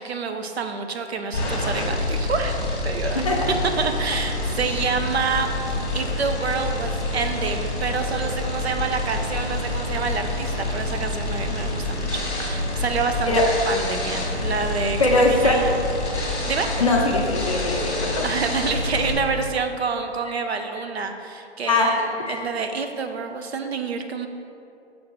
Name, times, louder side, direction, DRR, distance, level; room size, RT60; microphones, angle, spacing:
voice 1, 0.0-2.6 2.8-3.2 3.8-13.3 13.7-15.7 16.5-16.7 18.2-24.3, right 5 dB, 70° right, 6 dB, 0.7 m, -28 dB
sound 1, 1.3-19.1, left 2 dB, 15° left, 1.0 m, -27 dB
voice 2, 15.0-15.6 16.8-18.3 21.6-22.4, left 2 dB, 30° left, -3 dB, 0.7 m, -21 dB
6.2 x 3.6 x 6.0 m, 2.7 s
hypercardioid pair, 180°, 33 cm